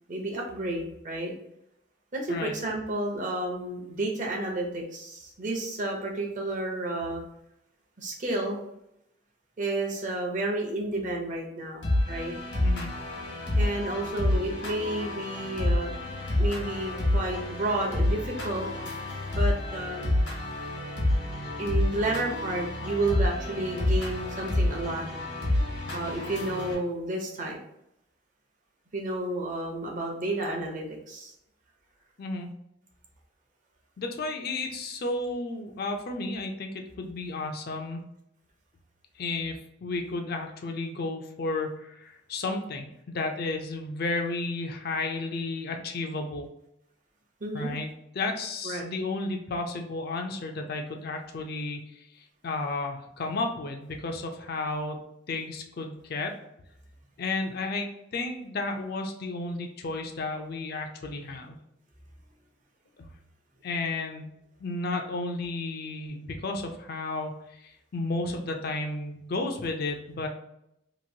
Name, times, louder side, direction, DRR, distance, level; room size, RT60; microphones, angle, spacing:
voice 1, 0.1-1.3 2.1-7.2 8.0-8.6 9.6-12.3 13.6-15.9 16.4-18.7 19.4-20.1 21.6-25.1 25.9-27.6 28.9-31.3 47.4-47.7 48.6-48.9, right 2 dB, 45° right, 0 dB, 0.7 m, -31 dB
sound 1, 11.8-26.7, left 1 dB, 80° left, 1.2 m, -28 dB
voice 2, 32.2-32.5 34.0-38.0 39.2-46.5 47.5-47.9 48.1-56.3 57.2-61.6 63.0-63.1 63.6-64.3 64.6-70.3, left 3 dB, 55° left, 4 dB, 0.4 m, -33 dB
3.0 x 2.5 x 2.7 m, 0.80 s
head